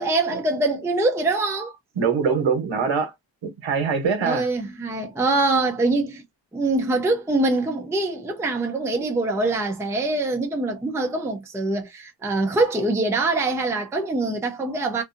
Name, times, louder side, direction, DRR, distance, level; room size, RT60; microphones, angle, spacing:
voice 1, 0.0-1.7 4.2-6.2 6.5-15.0, right 2 dB, 5° right, 0.4 m, -24 dB
voice 2, 2.0-3.1 3.4-4.5, right 5 dB, 80° right, 1.1 m, -23 dB
2.6 x 2.4 x 2.5 m
wide cardioid pair, 150°, 45 cm